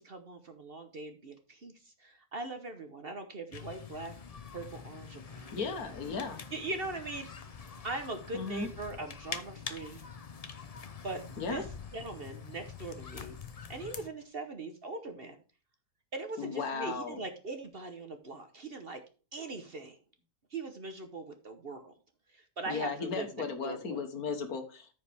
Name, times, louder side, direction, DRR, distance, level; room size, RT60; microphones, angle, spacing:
voice 1, 0.0-4.1 4.5-5.5 6.5-7.3 7.8-10.0 11.0-11.6 11.9-13.4 13.7-15.4 16.1-19.0 19.3-20.0 20.5-21.9 22.3-24.0, right 3 dB, 45° right, 7 dB, 1.0 m, -41 dB
sound 1, 3.5-14.1, left 6 dB, 45° left, 0.5 m, -45 dB
voice 2, 5.5-6.4 8.3-8.7 11.4-11.6 16.4-17.2 22.7-24.9, left 5 dB, 70° left, 7 dB, 1.7 m, -36 dB
14.0 x 5.1 x 3.4 m, 0.36 s
omnidirectional pair, 1.7 m